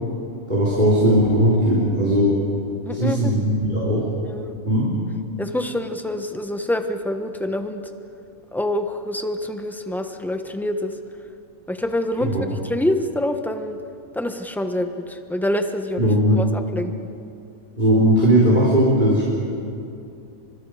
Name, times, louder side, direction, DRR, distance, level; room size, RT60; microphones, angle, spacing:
voice 1, 0.5-2.4 2.9-4.1 4.6-4.9 12.2-12.4 16.0-16.4 17.8-19.3, equal, 30° right, -6 dB, 4.0 m, -18 dB
voice 2, 2.8-3.3 4.2-4.6 5.4-7.8 8.5-11.0 11.7-13.8 14.1-16.9, left 1 dB, ahead, 6 dB, 1.0 m, -26 dB
30.0 x 25.0 x 5.0 m, 2.6 s
omnidirectional pair, 1.5 m